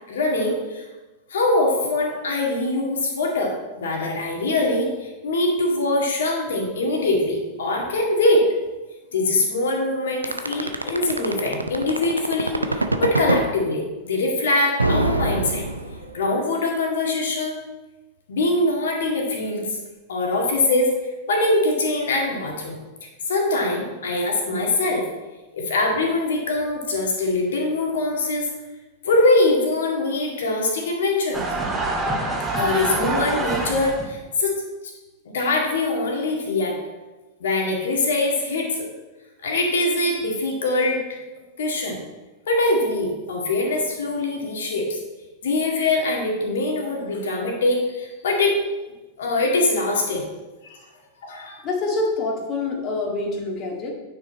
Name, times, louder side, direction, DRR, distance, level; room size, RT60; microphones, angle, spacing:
voice 1, 0.1-0.8 1.3-8.4 9.1-15.7 16.0-17.6 18.3-19.8 20.1-20.9 21.3-22.8 23.3-25.1 25.5-28.5 29.0-31.5 32.5-34.6 35.3-36.8 37.4-38.9 39.4-41.0 41.6-42.0 42.5-45.0 45.4-48.6 49.2-50.3 50.6-50.8 51.2-51.6, left 2 dB, 60° left, 0 dB, 2.1 m, -23 dB
sound 1, 10.2-13.5 14.8-16.2, right 2 dB, 80° right, 0.6 m, -23 dB
sound 2, 31.3-34.1, right 2 dB, 15° right, 2.3 m, -26 dB
voice 2, 51.6-53.9, left 2 dB, 35° left, 0 dB, 1.9 m, -26 dB
9.5 x 6.2 x 4.2 m, 1.1 s
figure-of-eight pair, 90°, 0 cm